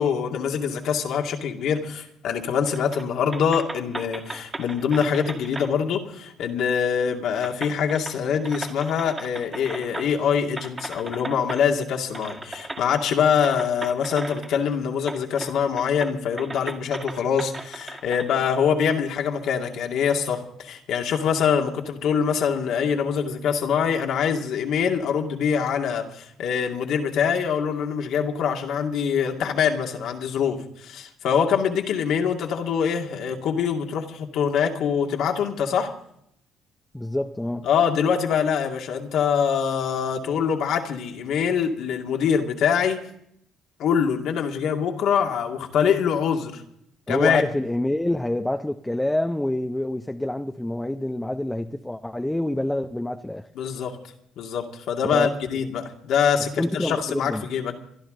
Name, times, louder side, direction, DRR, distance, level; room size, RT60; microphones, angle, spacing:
voice 1, 0.0-35.9 37.6-43.0 43.8-46.6 47.1-47.4 53.6-54.0 54.4-57.8, left 7 dB, 70° left, 2.3 m, -24 dB
sound 1, 2.7-3.0 3.3-5.7 6.8-6.9 7.4-10.2 10.6-11.6 12.1-12.8 13.4-14.7 15.0-15.5 15.8-18.3, right 2 dB, 20° right, 2.0 m, -36 dB
voice 2, 36.9-37.7 47.1-53.5 55.1-55.3 56.6-57.4, left 1 dB, 5° left, 0.7 m, -27 dB
26.5 x 11.5 x 3.8 m
cardioid pair, 95°, 0 cm